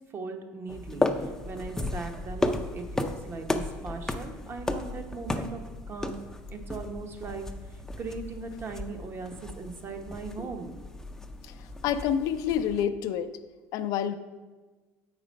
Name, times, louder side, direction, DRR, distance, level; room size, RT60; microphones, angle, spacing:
voice 1, 0.1-5.6 5.9-6.2 6.5-7.4 7.7-10.7, right 4 dB, 35° right, 6 dB, 0.9 m, -39 dB
sound 1, 0.7-12.9, left 2 dB, 5° left, 0.5 m, -34 dB
voice 2, 11.4-13.3 13.7-14.2, left 9 dB, 65° left, 11 dB, 0.5 m, -28 dB
7.4 x 4.9 x 5.1 m, 1.3 s
supercardioid pair, 100°, 7 cm